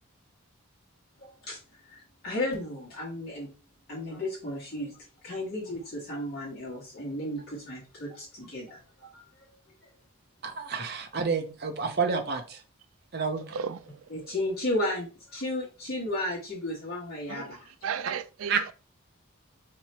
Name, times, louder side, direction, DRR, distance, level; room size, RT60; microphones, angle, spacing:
voice 1, 1.2-1.6 1.9-3.5 3.9-4.9 5.2-9.5 14.1-17.7, left 1 dB, 45° left, 1.4 m, -34 dB
voice 2, 10.4-12.6 13.1-13.6 18.5-18.7, right 5 dB, 50° right, 0.7 m, -29 dB
voice 3, 17.8-18.7, right 7 dB, 75° right, 0.4 m, -33 dB
3.2 x 2.9 x 4.3 m
head